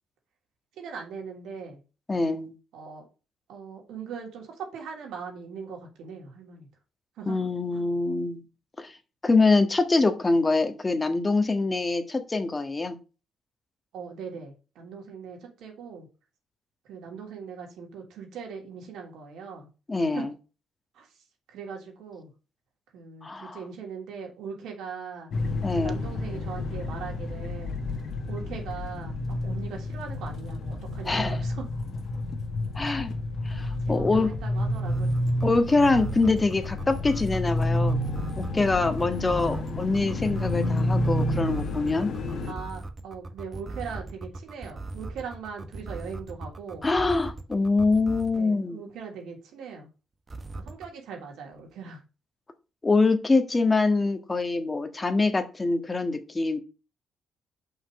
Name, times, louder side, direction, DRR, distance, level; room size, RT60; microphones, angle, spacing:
voice 1, 0.7-1.8 2.7-3.1 3.5-6.7 7.2-7.4 7.7-7.8 13.9-16.1 16.8-19.7 20.1-20.3 20.9-21.1 21.5-22.3 22.9-25.3 25.7-31.7 33.8-35.1 42.5-46.9 48.3-49.9 50.6-52.0, right 6 dB, 80° right, 1 dB, 3.1 m, -40 dB
voice 2, 2.1-2.5 7.2-8.4 8.8-8.9 9.2-13.0 19.9-20.3 23.2-23.6 25.6-26.0 31.0-31.4 32.7-33.1 33.4-34.3 35.4-38.0 38.4-42.1 46.8-48.8 52.8-56.6, left 3 dB, 20° left, 8 dB, 1.6 m, -24 dB
sound 1, 25.3-42.5, left 1 dB, 60° left, 1.7 m, -30 dB
sound 2, 34.0-48.4 50.3-50.9, right 2 dB, 30° right, 1.1 m, -38 dB
5.7 x 5.5 x 6.4 m, 0.32 s
cardioid pair, 90°, 0 cm